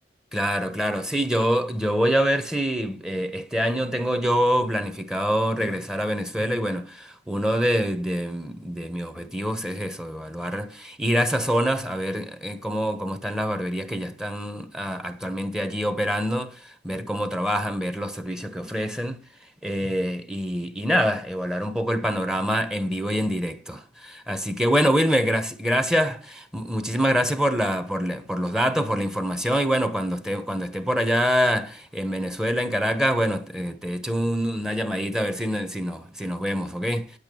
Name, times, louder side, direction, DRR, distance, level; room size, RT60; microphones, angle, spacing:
voice 1, 0.3-19.2 19.6-37.1, equal, 5° right, 1.2 m, -25 dB
10.0 x 8.2 x 6.9 m
head